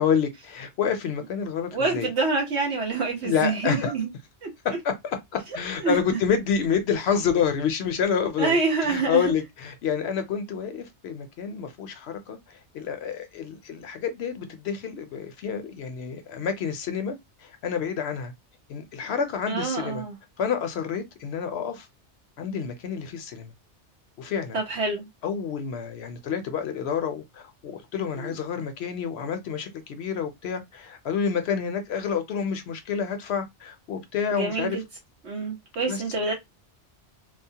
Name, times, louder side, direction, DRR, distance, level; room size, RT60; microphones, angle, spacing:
voice 1, 0.0-2.1 3.2-3.9 4.6-5.2 5.5-8.6 8.8-17.2 17.4-18.3 18.7-20.0 20.4-21.9 22.4-23.5 24.2-24.6 25.2-34.8 35.9-36.0, left 7 dB, 70° left, 0.8 m, -28 dB
voice 2, 1.7-4.1 4.4-4.8 5.8-6.2 8.4-9.3 19.5-20.2 24.5-25.1 28.2-28.4 34.3-34.8 35.2-36.3, right 4 dB, 70° right, 1.1 m, -27 dB
2.9 x 2.0 x 2.7 m
omnidirectional pair, 1.2 m